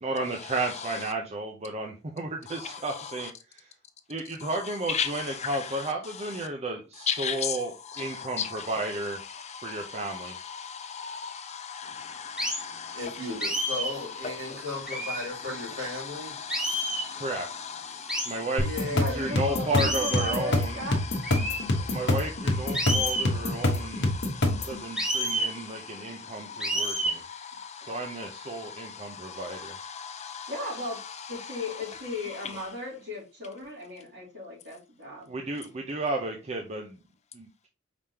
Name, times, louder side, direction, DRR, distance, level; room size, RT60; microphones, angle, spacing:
voice 1, 0.0-3.3 4.1-9.2 9.6-10.3 17.1-17.5 18.2-18.6 18.9-20.8 21.9-24.1 24.7-27.2 27.8-29.7 35.3-37.0 37.3-37.7, right 2 dB, 35° right, 0.6 m, -33 dB
voice 2, 4.9-5.5 7.1-7.6 7.9-8.5 9.3-13.0 14.4-14.6 16.3-18.4 21.4-22.1 22.7-28.1 28.5-30.5, left 7 dB, 35° left, 0.5 m, -37 dB
sound 1, 12.4-12.7 13.4-14.0 14.9-15.3 16.5-17.1 18.1-18.4 19.8-20.4 21.2-21.6 22.7-23.3 25.0-25.5 26.6-27.2, equal, 5° right, 0.9 m, -29 dB
voice 3, 12.9-16.3 17.9-18.1 18.4-19.3, left 2 dB, 75° right, 2.8 m, -36 dB
sound 2, 18.6-24.8, left 1 dB, 60° left, 1.2 m, -26 dB
voice 4, 19.0-21.0 27.8-27.9 30.5-31.0 31.3-35.3, left 2 dB, 60° right, 2.9 m, -36 dB
5.0 x 3.6 x 2.8 m
head